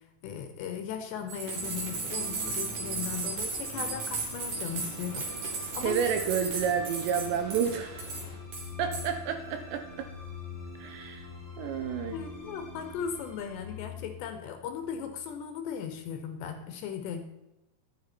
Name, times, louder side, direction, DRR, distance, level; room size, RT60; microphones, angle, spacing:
voice 1, 0.2-6.0 12.1-17.4, left 7 dB, 75° left, 7 dB, 2.9 m, -37 dB
sound 1, 1.2-15.6, left 4 dB, 5° left, 1.4 m, -45 dB
sound 2, 1.3-7.7 8.0-8.2 8.5-9.0, right 4 dB, 50° right, 3.1 m, -35 dB
sound 3, 1.5-8.4, left 2 dB, 35° left, 1.9 m, -48 dB
voice 2, 5.6-8.1 8.8-10.1 10.8-11.3 11.6-12.2, right 7 dB, 80° right, 7 dB, 2.7 m, -30 dB
11.5 x 9.9 x 4.3 m, 0.91 s
omnidirectional pair, 5.6 m